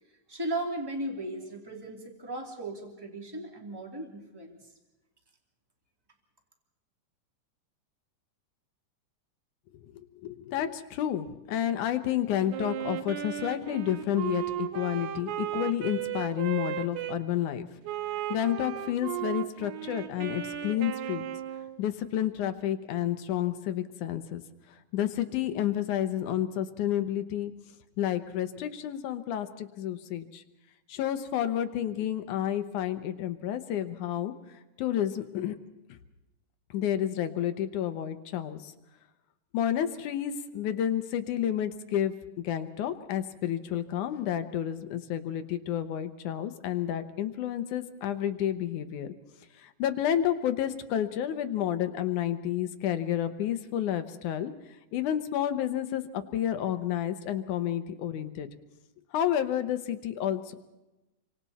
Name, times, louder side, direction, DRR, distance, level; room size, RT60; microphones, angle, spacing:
voice 1, 0.3-4.6, right 1 dB, 10° right, 0 dB, 2.5 m, -36 dB
voice 2, 10.2-17.7 18.3-21.2 21.8-24.4 24.9-27.5 28.0-30.4 30.9-34.3 34.8-35.6 36.7-38.7 39.5-49.1 49.6-54.5 54.9-58.5 59.1-60.6, left 11 dB, 75° left, 9 dB, 2.3 m, -30 dB
Wind instrument woodwind instrument, 12.5-17.2 17.8-21.8, right 11 dB, 70° right, 2.3 m, -35 dB
28.5 x 25.0 x 4.2 m, 1.0 s
omnidirectional pair, 3.7 m